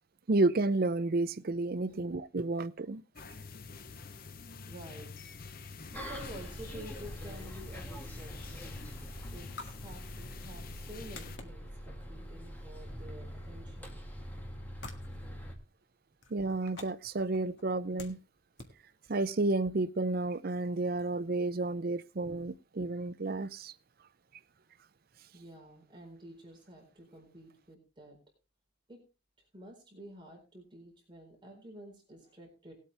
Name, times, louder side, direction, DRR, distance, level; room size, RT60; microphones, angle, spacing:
voice 1, 0.3-3.0 16.3-18.2 19.1-23.7, right 2 dB, 50° right, 0.5 m, -31 dB
sound 1, 3.1-11.4, left 4 dB, 45° left, 0.8 m, -47 dB
voice 2, 4.7-5.3 5.9-8.8 9.3-14.0 25.3-28.2 28.9-29.0 29.5-32.7, right 1 dB, 25° right, 4.3 m, -50 dB
Bus, 5.9-15.5, equal, 10° left, 1.8 m, -44 dB
sound 2, 9.5-19.7, left 3 dB, 65° left, 1.9 m, -54 dB
19.0 x 8.4 x 3.3 m
head